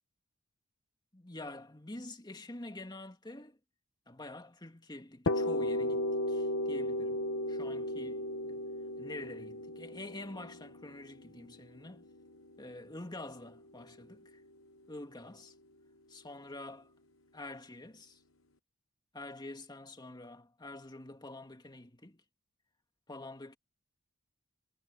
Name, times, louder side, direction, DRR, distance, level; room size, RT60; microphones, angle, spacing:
voice 1, 1.1-3.6 4.1-7.2 7.5-8.6 9.0-12.1 12.6-14.4 14.9-15.5 16.1-16.9 17.3-18.2 19.1-22.2 23.1-23.6, left 2 dB, 20° left, 2.0 m, -47 dB
sound 1, 5.3-13.0, left 1 dB, 70° left, 1.1 m, -35 dB
head